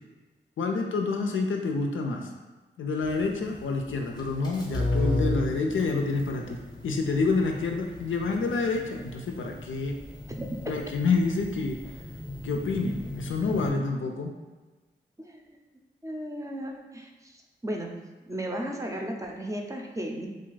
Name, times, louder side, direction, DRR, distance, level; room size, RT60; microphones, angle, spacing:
voice 1, 0.6-2.3 2.8-10.0 10.7-11.8 12.4-14.3, left 4 dB, 80° left, 2 dB, 0.4 m, -28 dB
sound 1, 3.0-13.7, left 2 dB, 20° left, 0.7 m, -35 dB
voice 2, 16.0-17.4 17.6-17.9 18.2-20.3, right 1 dB, 15° right, 1 dB, 0.5 m, -35 dB
2.5 x 2.4 x 3.9 m, 1.2 s
cardioid pair, 45°, 20 cm